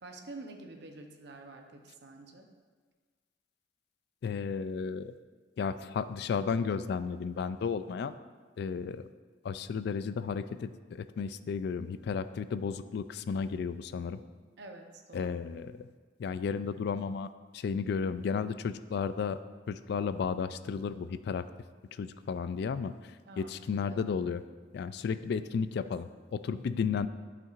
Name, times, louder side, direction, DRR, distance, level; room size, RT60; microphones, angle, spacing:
voice 1, 0.0-2.5 14.6-15.4 23.3-24.0 25.1-25.4 26.4-26.5, right 2 dB, 65° right, 3 dB, 0.7 m, -48 dB
voice 2, 4.2-5.2 5.6-8.1 8.6-9.1 9.4-14.2 15.1-15.9 16.2-19.4 19.7-21.5 21.9-24.4 24.7-27.1, left 6 dB, 60° left, 13 dB, 0.3 m, -33 dB
10.5 x 5.8 x 2.5 m, 1.5 s
head